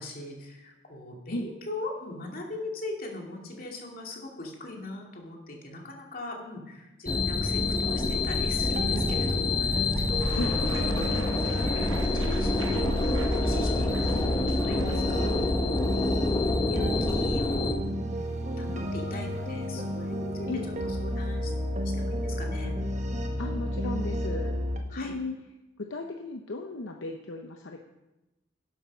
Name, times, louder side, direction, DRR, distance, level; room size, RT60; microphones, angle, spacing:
voice 1, 0.0-10.8 11.2-11.7 11.9-15.6 16.0-16.3 16.7-18.1 18.4-20.5 20.8-21.5 21.9-22.7 24.9-25.1, left 2 dB, 45° left, 0 dB, 2.4 m, -40 dB
sound 1, 7.1-17.7, left 2 dB, 20° left, 0.8 m, -27 dB
sound 2, 8.6-24.8, equal, 35° right, 1.3 m, -32 dB
sound 3, 10.2-15.5, right 5 dB, 75° right, 0.9 m, -43 dB
voice 2, 23.4-24.6 24.9-25.3 25.8-27.9, left 2 dB, 70° left, 3 dB, 0.8 m, -35 dB
11.5 x 7.8 x 6.2 m, 1.0 s
head